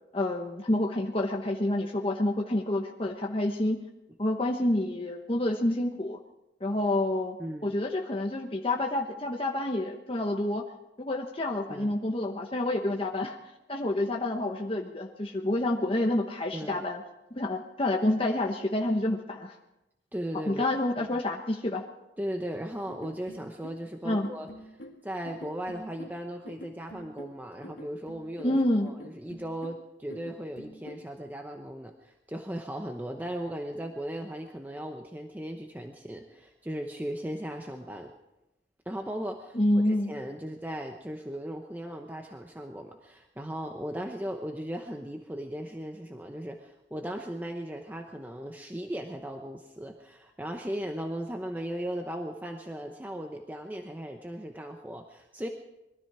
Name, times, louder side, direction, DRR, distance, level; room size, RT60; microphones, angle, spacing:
voice 1, 0.1-3.8 4.2-6.2 6.6-7.4 7.6-10.6 11.0-13.4 13.7-17.0 17.3-19.5 20.5-21.8 24.0-24.3 28.4-28.9 39.5-40.1, left 1 dB, 30° left, 1 dB, 1.0 m, -28 dB
voice 2, 7.4-7.7 11.7-11.9 16.5-16.9 20.1-20.7 21.0-21.1 22.2-24.8 25.0-38.1 38.9-39.6 39.8-55.5, right 1 dB, 10° right, 3 dB, 0.8 m, -37 dB
sound 1, 22.9-31.1, equal, 75° left, 1.9 m, -47 dB
21.5 x 13.5 x 4.8 m, 0.94 s
head